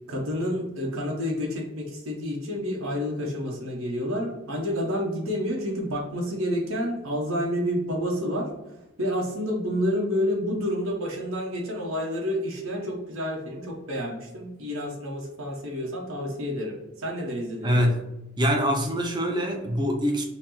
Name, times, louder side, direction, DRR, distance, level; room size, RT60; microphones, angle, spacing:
voice 1, 0.1-8.5 9.0-18.0, equal, 80° right, -1 dB, 0.9 m, -29 dB
voice 2, 17.6-18.1 18.4-20.2, equal, 20° right, 2 dB, 0.5 m, -24 dB
5.7 x 2.0 x 3.0 m, 0.93 s
head